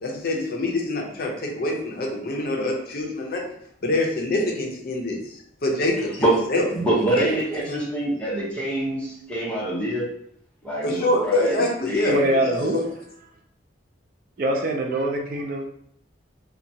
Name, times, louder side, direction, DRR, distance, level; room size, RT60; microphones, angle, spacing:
voice 1, 0.0-3.4 3.8-5.2 5.6-6.7 7.2-7.3 7.7-7.8 10.8-12.8, left 2 dB, 55° left, 0 dB, 0.5 m, -25 dB
voice 2, 6.7-10.1 10.6-12.6, right 1 dB, 5° left, -6 dB, 0.8 m, -25 dB
voice 3, 12.1-12.9 14.4-15.6, right 1 dB, 50° right, 3 dB, 0.4 m, -23 dB
2.8 x 2.2 x 2.7 m, 0.69 s
head